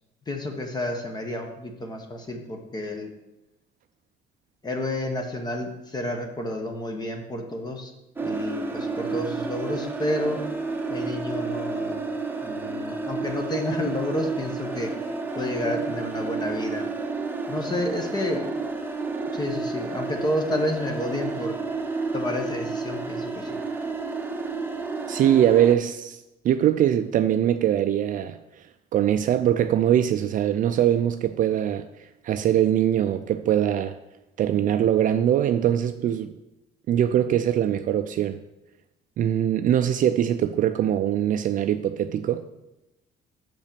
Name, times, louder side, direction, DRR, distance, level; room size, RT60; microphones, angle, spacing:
voice 1, 0.3-3.1 4.6-7.9 8.2-10.4 10.9-12.1 12.4-14.9 15.4-16.9 17.5-18.4 19.3-21.6 22.1-23.6, left 1 dB, 25° left, 1.1 m, -30 dB
sound 1, 8.2-25.7, right 3 dB, 10° right, 0.9 m, -31 dB
voice 2, 25.1-26.2 26.4-28.4 28.9-31.9 32.2-34.0 34.4-36.3 36.9-38.4 39.2-42.4, right 10 dB, 50° right, 0.4 m, -22 dB
6.1 x 5.4 x 6.8 m
cardioid pair, 110°, 17 cm